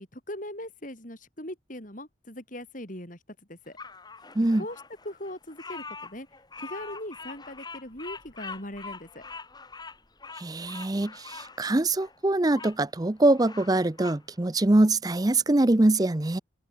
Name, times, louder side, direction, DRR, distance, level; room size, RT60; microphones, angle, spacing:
voice 1, 0.0-3.2 3.5-3.8 4.5-6.3 6.6-9.3, left 1 dB, 40° left, 6.8 m, -40 dB
Bird vocalization bird call bird song, 3.8-12.8 13.2-14.2, left 4 dB, 20° left, 3.1 m, -44 dB
voice 2, 10.4-16.4, right 2 dB, 20° right, 0.6 m, -23 dB
head